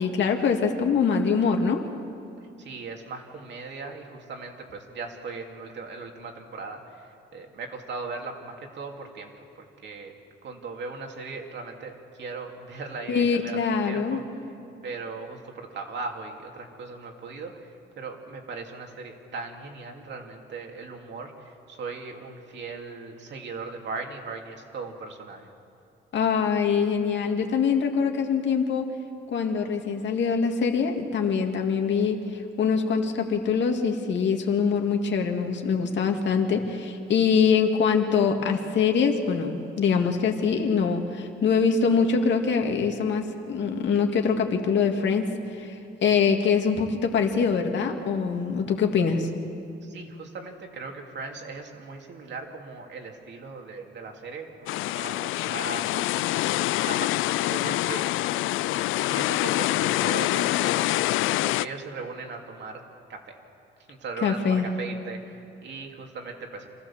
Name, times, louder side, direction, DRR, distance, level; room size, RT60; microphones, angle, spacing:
voice 1, 0.0-1.8 13.1-14.2 26.1-28.9 29.3-32.2 32.6-45.3 45.6-45.7 46.0-49.3 64.2-64.7, left 6 dB, 65° left, 3 dB, 2.2 m, -24 dB
voice 2, 2.6-9.3 9.6-10.2 10.4-14.5 14.8-25.5 49.8-58.1 59.1-62.8 63.1-63.4 63.9-66.7, right 4 dB, 60° right, 2 dB, 2.9 m, -38 dB
sound 1, 54.7-61.7, left 16 dB, 90° left, 0.4 m, -25 dB
26.0 x 15.0 x 7.4 m, 2.6 s
cardioid pair, 90°, 20 cm